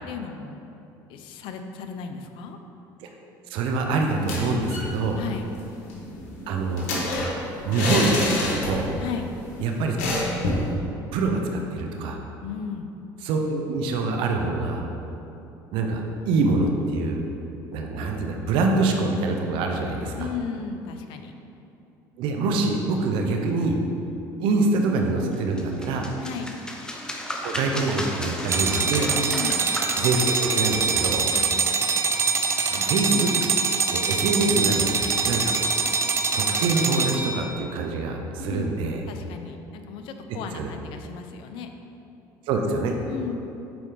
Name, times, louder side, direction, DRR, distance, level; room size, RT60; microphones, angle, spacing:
voice 1, 0.1-0.6 1.1-2.6 5.2-5.5 9.0-9.3 12.4-12.9 20.1-21.3 26.2-26.6 29.2-29.7 31.3-31.6 38.4-38.8 39.1-41.7 43.1-43.4, left 6 dB, 70° left, 6 dB, 0.6 m, -35 dB
voice 2, 3.5-5.2 6.5-6.9 7.6-8.9 9.6-10.0 11.1-12.2 13.2-14.8 15.7-17.2 17.7-20.3 22.2-23.8 24.4-26.1 27.4-29.1 30.0-31.2 32.7-33.3 33.9-35.6 36.3-39.0 40.3-40.7 42.5-42.9, right 3 dB, 70° right, 2 dB, 0.7 m, -25 dB
sound 1, 4.1-4.9 5.2-5.3 5.6-9.1 9.3-9.5 10.0-10.7, left 2 dB, 90° left, 1.2 m, -27 dB
sound 2, 25.3-32.8, left 1 dB, 10° left, 0.8 m, -35 dB
sound 3, 28.5-37.5, right 5 dB, 30° right, 0.5 m, -24 dB
7.0 x 4.6 x 3.9 m, 2.8 s
supercardioid pair, 90°, 9 cm